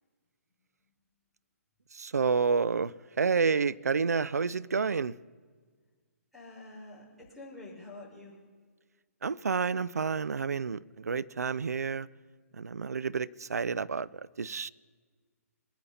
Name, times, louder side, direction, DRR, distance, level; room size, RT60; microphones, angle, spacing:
voice 1, 1.9-5.1 9.2-12.1 12.5-14.7, right 5 dB, 75° right, 0.4 m, -29 dB
voice 2, 6.3-8.4, left 2 dB, ahead, 5.0 m, -47 dB
22.5 x 10.0 x 4.1 m
figure-of-eight pair, 130°, 9 cm